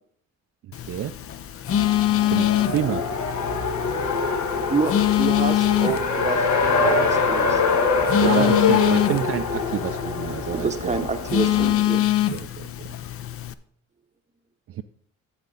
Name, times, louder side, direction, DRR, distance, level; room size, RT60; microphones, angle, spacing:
Telephone, 0.7-13.5, left 13 dB, 50° left, 0.5 m, -25 dB
Race car auto racing, 1.7-11.7, left 4 dB, 70° left, 1.4 m, -24 dB
voice 1, 2.3-3.0 8.1-11.1 12.3-13.0 14.7-14.8, right 11 dB, 50° right, 7 dB, 0.4 m, -28 dB
voice 2, 4.7-7.6 8.2-8.6 10.5-12.1, right 4 dB, 25° right, 9 dB, 0.8 m, -28 dB
9.2 x 7.2 x 3.8 m, 0.64 s
cardioid pair, 90°, 30 cm